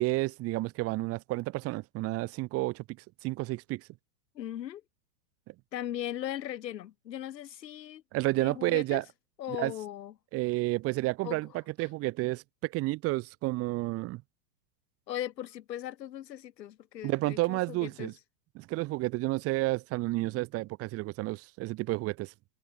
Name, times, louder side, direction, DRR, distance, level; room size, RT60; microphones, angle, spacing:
voice 1, 0.0-2.8 3.2-3.9 8.1-9.0 9.5-9.7 10.3-14.2 17.0-18.1 18.6-22.3, right 20 dB, 25° right, 6.3 m, -31 dB
voice 2, 4.4-4.8 5.7-8.0 8.4-9.0 9.4-10.1 11.2-11.4 11.8-11.9 15.1-18.1, left 11 dB, 75° left, 7.1 m, -38 dB
supercardioid pair, 170°, 50 cm